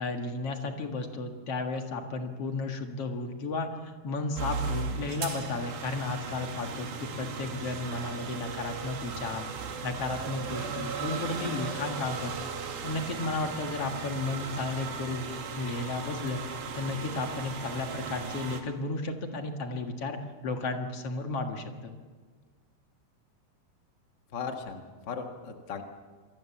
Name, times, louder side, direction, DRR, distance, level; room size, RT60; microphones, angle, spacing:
voice 1, 0.0-9.5 9.8-12.5 12.8-16.4 16.7-20.2 20.4-21.9, left 3 dB, 50° left, 4 dB, 1.9 m, -33 dB
sound 1, 4.4-18.6, right 5 dB, 60° right, 3.8 m, -37 dB
voice 2, 24.3-25.8, left 5 dB, 90° left, 4 dB, 0.9 m, -37 dB
28.0 x 23.0 x 7.2 m, 1.5 s
omnidirectional pair, 5.1 m